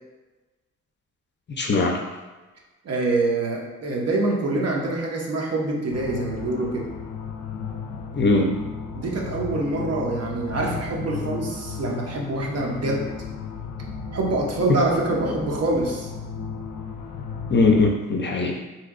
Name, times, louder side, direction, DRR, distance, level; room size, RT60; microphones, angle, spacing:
voice 1, 1.5-2.0 8.1-8.5 14.7-14.8 17.5-18.6, left 3 dB, 35° left, 1 dB, 0.5 m, -20 dB
voice 2, 2.8-6.9 9.0-13.1 14.1-16.1, right 2 dB, 55° right, -1 dB, 0.7 m, -25 dB
sound 1, 5.9-17.9, left 5 dB, 90° left, 0.5 m, -34 dB
2.8 x 2.2 x 3.5 m, 1.2 s
cardioid pair, 85°, 31 cm